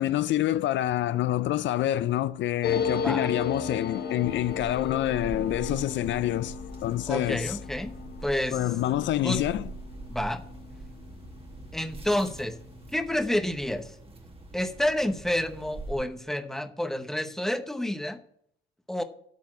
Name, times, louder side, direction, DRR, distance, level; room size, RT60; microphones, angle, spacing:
voice 1, 0.0-6.5 6.8-7.6 8.5-9.6, left 13 dB, 70° left, 0.4 m, -27 dB
sound 1, 2.6-11.8 12.1-12.2 12.4-13.0, left 6 dB, 55° left, 0.9 m, -35 dB
voice 2, 3.0-3.3 7.1-7.9 8.2-8.6 9.2-9.4 10.1-10.4 11.7-12.6 12.9-13.9 14.5-18.2 18.9-19.0, left 1 dB, ahead, 0.8 m, -29 dB
sound 2, 4.2-16.0, right 3 dB, 30° right, 1.6 m, -43 dB
12.0 x 4.2 x 7.3 m
cardioid pair, 90°, 20 cm